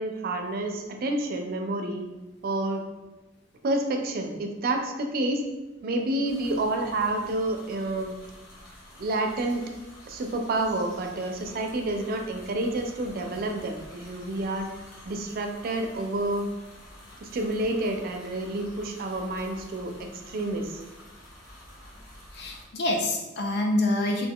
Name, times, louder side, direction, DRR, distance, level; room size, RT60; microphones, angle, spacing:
voice 1, 0.0-2.0 2.4-2.8 3.6-5.4 5.8-8.1 9.0-9.6 10.1-14.7 15.1-16.5 17.2-20.8, right 2 dB, 50° right, 4 dB, 0.3 m, -29 dB
sound 1, 6.3-22.6, left 1 dB, 85° left, 0.9 m, -49 dB
voice 2, 22.3-24.3, left 1 dB, 60° left, 2 dB, 0.5 m, -26 dB
2.6 x 2.2 x 3.5 m, 1.1 s
head